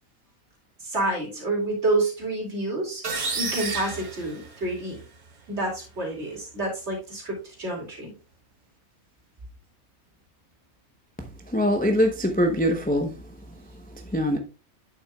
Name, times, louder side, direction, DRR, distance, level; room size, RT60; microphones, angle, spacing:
voice 1, 0.8-3.0 3.3-5.0 5.5-8.1, right 2 dB, 50° right, 2.9 m, -28 dB
sound 1, 3.0-5.0, right 4 dB, 90° right, 1.7 m, -31 dB
voice 2, 11.5-13.1 14.1-14.4, equal, 10° left, 0.6 m, -22 dB
8.9 x 7.1 x 2.3 m
omnidirectional pair, 1.5 m